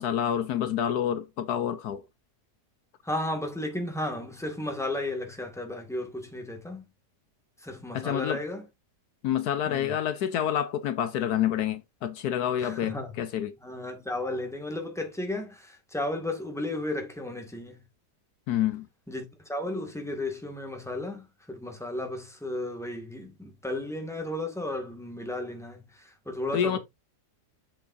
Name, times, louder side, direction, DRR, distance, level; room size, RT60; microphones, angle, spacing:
voice 1, 0.0-2.0 7.9-8.4 9.2-13.5 18.5-18.9 26.5-26.8, left 10 dB, 75° left, 1.2 m, -28 dB
voice 2, 3.0-6.8 7.6-8.6 9.7-10.0 12.6-13.1 13.6-17.8 19.1-26.8, left 1 dB, ahead, 2.0 m, -34 dB
7.6 x 7.4 x 2.7 m
omnidirectional pair, 1.7 m